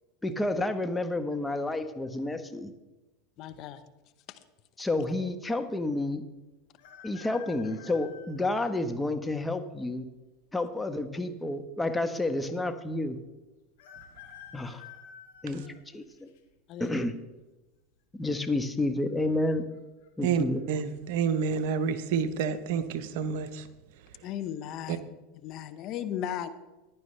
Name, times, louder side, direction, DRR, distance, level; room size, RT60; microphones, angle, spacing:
voice 1, 0.2-2.7 4.8-6.2 7.0-10.1 10.5-13.2 14.5-14.8 15.4-15.6 15.9-16.3 16.8-17.1 18.1-19.6 20.2-20.6, left 2 dB, 10° left, 1.2 m, -30 dB
voice 2, 3.4-3.8 4.3-4.4 16.7-17.0 20.3-20.4 24.2-26.5, left 10 dB, 50° left, 1.0 m, -37 dB
sound 1, 6.8-8.8 9.5-9.6 10.7-11.3 11.6-11.7 11.9-12.0 13.8-16.4 16.9-17.3 18.5-18.8 19.1-19.2 19.7-20.1 20.5-20.7, left 9 dB, 70° left, 1.9 m, -51 dB
voice 3, 20.2-23.7, right 6 dB, 65° right, 1.0 m, -29 dB
15.0 x 11.0 x 3.3 m
hypercardioid pair, 100°, 0 cm